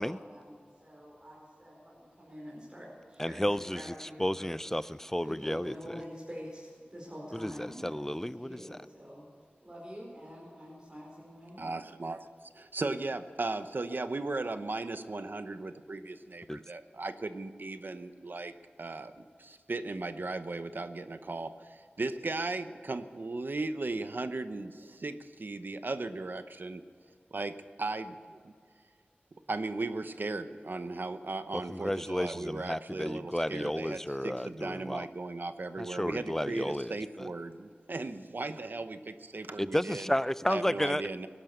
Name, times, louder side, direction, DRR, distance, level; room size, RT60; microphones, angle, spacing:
voice 1, 0.0-4.5 5.2-9.3 9.6-11.7, equal, 25° right, -5 dB, 4.8 m, -46 dB
voice 2, 3.2-6.0 7.3-8.8 16.5-16.6 31.7-35.1 35.8-37.3 39.6-41.0, equal, 10° left, 16 dB, 0.4 m, -32 dB
voice 3, 11.6-12.3 12.5-18.5 18.8-19.1 19.4-26.8 27.3-28.5 29.5-40.1 40.5-41.3, right 3 dB, 65° right, 10 dB, 0.8 m, -37 dB
18.5 x 11.5 x 6.7 m, 2.2 s
wide cardioid pair, 65°, 4 cm